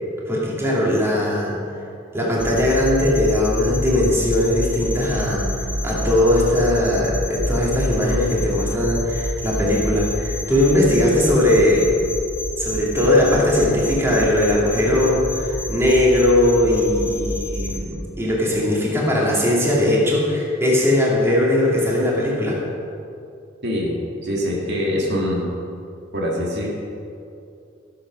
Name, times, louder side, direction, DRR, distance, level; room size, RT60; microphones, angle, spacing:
voice 1, 0.3-1.6 2.1-5.5 5.8-11.9 12.6-22.6, left 1 dB, 15° right, -5 dB, 2.6 m, -19 dB
sound 1, 2.4-17.8, left 1 dB, 10° left, 1.1 m, -28 dB
voice 2, 23.6-25.5 26.1-26.7, equal, 60° right, -3 dB, 2.3 m, -24 dB
15.0 x 7.8 x 6.2 m, 2.6 s
head